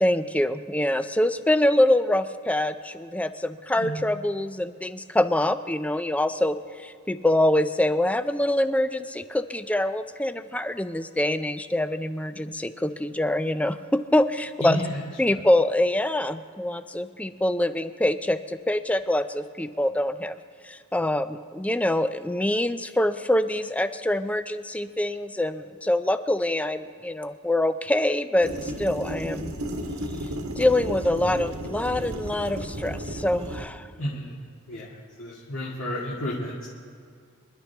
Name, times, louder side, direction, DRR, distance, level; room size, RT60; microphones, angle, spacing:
voice 1, 0.0-14.8 15.2-20.4 20.6-29.5 30.6-33.9, left 1 dB, 5° left, 11 dB, 0.4 m, -25 dB
voice 2, 14.6-15.0 15.3-15.4 34.0-34.4 34.7-34.9 35.2-36.7, left 1 dB, 65° left, -7 dB, 2.2 m, -31 dB
sound 1, 28.4-33.6, right 1 dB, 70° right, 1.6 m, -33 dB
26.0 x 11.5 x 3.5 m, 2.3 s
head